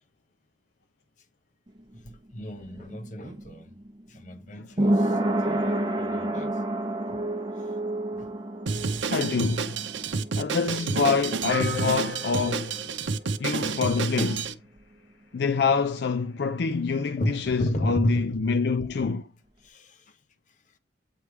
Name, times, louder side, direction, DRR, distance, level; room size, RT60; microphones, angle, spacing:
sound 1, 1.7-13.2 13.5-13.6, right 1 dB, 25° right, 0.9 m, -30 dB
voice 1, 2.0-3.7 4.1-5.7 6.0-6.6 7.1-7.2 7.6-7.7 8.2-8.3 10.1-10.2 17.2-19.1 19.6-20.2, equal, 45° left, 0.9 m, -34 dB
Drum kit, 8.7-14.5, right 5 dB, 90° right, 0.7 m, -30 dB
voice 2, 9.1-9.8 10.4-12.8 13.4-14.5 15.3-19.2, left 5 dB, 65° left, 0.4 m, -26 dB
sound 2, 11.5-14.1, left 1 dB, 80° left, 1.4 m, -36 dB
8.4 x 3.2 x 4.6 m
head